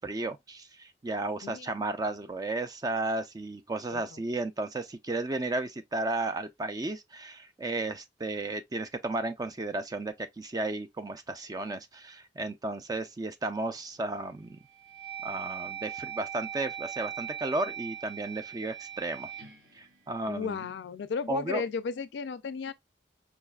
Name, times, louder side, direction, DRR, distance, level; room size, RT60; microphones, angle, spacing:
voice 1, 0.0-14.6 15.2-19.3 19.8-20.6 21.3-21.6, right 2 dB, 20° right, 0.4 m, -34 dB
voice 2, 1.4-1.7 3.9-4.2 20.3-22.7, left 5 dB, 70° left, 0.4 m, -34 dB
sound 1, 13.7-14.1 14.6-20.8, right 9 dB, 80° right, 1.9 m, -41 dB
4.7 x 2.4 x 2.2 m
head